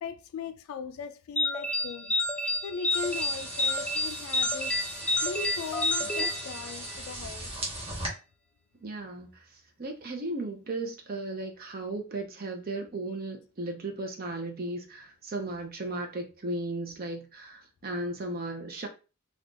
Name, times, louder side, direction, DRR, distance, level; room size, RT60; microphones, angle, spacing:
voice 1, 0.0-2.2 2.6-4.7 5.2-7.6, left 6 dB, 75° left, 0.3 m, -39 dB
sound 1, 1.4-7.1, left 2 dB, 5° left, 0.4 m, -29 dB
sound 2, 2.9-8.1, right 1 dB, 25° right, 1.0 m, -39 dB
voice 2, 8.8-9.3 9.8-18.9, right 2 dB, 45° right, 0.7 m, -35 dB
2.5 x 2.4 x 3.8 m
head